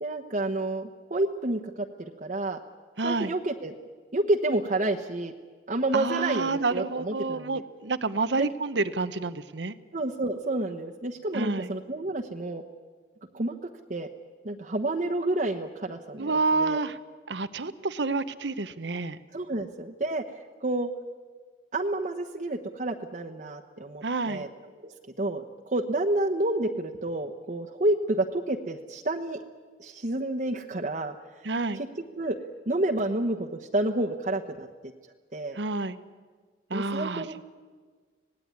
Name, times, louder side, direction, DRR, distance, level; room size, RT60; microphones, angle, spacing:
voice 1, 0.0-2.6 3.0-3.7 4.1-5.3 5.7-7.6 8.4-8.5 9.9-12.6 13.3-13.6 13.9-14.1 14.4-16.8 19.3-20.2 20.6-20.9 21.7-24.5 24.8-29.4 29.8-31.1 31.8-31.9 32.2-32.4 32.7-34.7 35.3-35.6 36.7-37.4, right 2 dB, 45° right, 2 dB, 1.1 m, -29 dB
voice 2, 3.0-3.3 5.9-9.7 11.3-11.7 16.2-17.0 17.3-19.2 24.0-24.5 31.4-31.8 35.5-36.0 36.7-37.4, right 3 dB, 90° right, 13 dB, 1.0 m, -29 dB
25.5 x 18.5 x 9.7 m, 1.5 s
head